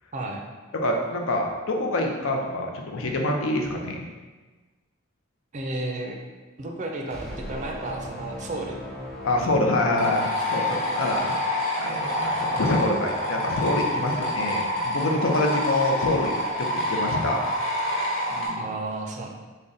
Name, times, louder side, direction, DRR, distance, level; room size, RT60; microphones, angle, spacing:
voice 1, 0.1-0.4 5.5-6.2 6.6-8.9 10.6-10.8 14.4-14.6 18.6-19.3, right 2 dB, 35° right, 2 dB, 0.4 m, -33 dB
voice 2, 0.8-4.0 9.2-11.3 11.8-16.3 16.6-17.4 18.3-18.6, left 1 dB, 80° left, 1 dB, 0.5 m, -26 dB
sound 1, 7.1-10.6, equal, 5° left, 0.6 m, -38 dB
sound 2, 9.9-18.5, left 1 dB, 30° left, 1.1 m, -27 dB
3.9 x 2.1 x 3.7 m, 1.3 s
head